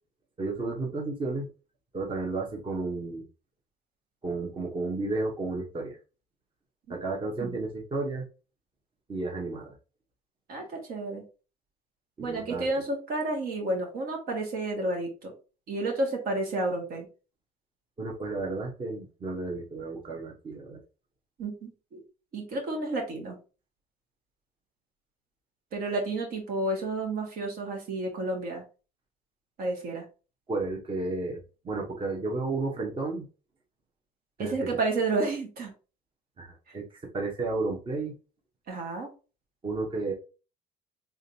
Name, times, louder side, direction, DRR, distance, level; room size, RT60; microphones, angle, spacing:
voice 1, 0.4-1.5 1.9-3.3 4.2-6.0 6.9-8.2 9.1-9.7 12.2-12.7 18.0-20.8 30.5-31.4 31.6-33.3 34.4-34.7 36.4-38.1 39.6-40.1, right 3 dB, 30° right, -1 dB, 1.1 m, -32 dB
voice 2, 10.5-11.2 12.2-15.3 15.7-17.1 21.4-22.0 22.3-23.4 25.7-28.6 29.6-30.0 34.4-35.7 36.7-36.8 38.7-39.1, right 2 dB, 65° right, 1 dB, 1.6 m, -31 dB
3.6 x 3.4 x 2.7 m, 0.33 s
supercardioid pair, 90°, 17 cm